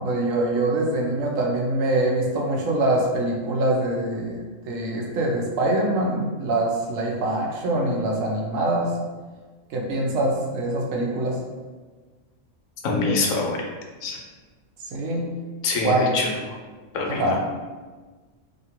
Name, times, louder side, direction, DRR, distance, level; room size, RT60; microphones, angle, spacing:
voice 1, 0.0-4.4 4.7-8.9 9.7-11.4 14.8-15.3 15.8-16.1 17.1-17.4, right 1 dB, 80° right, -1 dB, 1.0 m, -24 dB
voice 2, 12.8-13.6 14.0-14.2 15.6-16.3 16.9-17.4, left 3 dB, 85° left, 0 dB, 1.0 m, -24 dB
2.7 x 2.5 x 2.8 m, 1.3 s
omnidirectional pair, 1.4 m